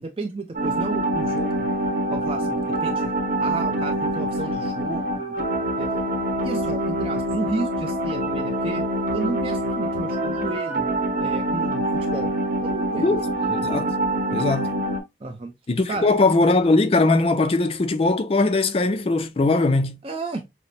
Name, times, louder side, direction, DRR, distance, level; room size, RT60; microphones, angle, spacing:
voice 1, 0.0-1.7 2.1-3.1 3.4-5.4 5.8-6.0 6.4-8.8 9.1-10.9 11.2-11.8 12.1-12.3 12.6-13.1 15.2-15.5 15.9-16.1 20.0-20.4, right 2 dB, 30° right, 0.4 m, -32 dB
sound 1, 0.5-15.0, right 1 dB, 50° right, 0.9 m, -25 dB
voice 2, 13.0-13.9 14.3-14.7 15.7-20.0, left 3 dB, 35° left, 0.4 m, -20 dB
5.9 x 2.0 x 2.5 m
head